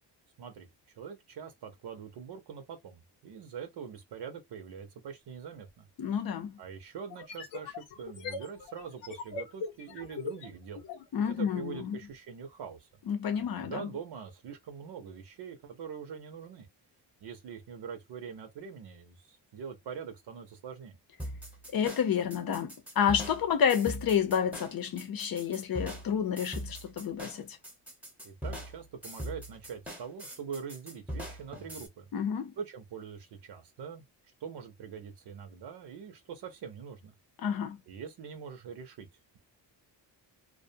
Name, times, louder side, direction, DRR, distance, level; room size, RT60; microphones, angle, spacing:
voice 1, 0.4-0.7 1.0-5.9 6.6-10.8 11.3-12.9 13.3-16.7 17.2-21.0 28.2-32.1 32.6-34.0 34.4-37.1 37.9-39.1, right 7 dB, 70° right, 0.7 m, -43 dB
sound 1, 5.7-5.8 7.1-11.1, left 4 dB, 85° left, 0.8 m, -41 dB
voice 2, 6.0-6.5 11.1-12.0 13.1-13.9 21.7-27.5 32.1-32.5 37.4-37.8, left 8 dB, 55° left, 0.7 m, -29 dB
sound 2, 21.2-31.9, equal, 5° right, 0.9 m, -41 dB
2.3 x 2.2 x 2.6 m
cardioid pair, 115°, 43 cm